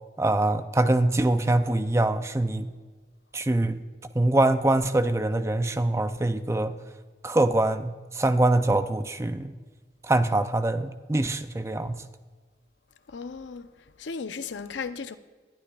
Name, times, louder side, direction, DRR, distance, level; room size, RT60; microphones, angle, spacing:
voice 1, 0.2-2.7 3.3-3.8 4.2-6.8 7.2-9.5 10.0-12.0, right 2 dB, 15° right, 0.4 m, -24 dB
voice 2, 13.1-13.7 14.0-15.2, left 5 dB, 90° left, 0.6 m, -35 dB
20.5 x 12.0 x 2.3 m
head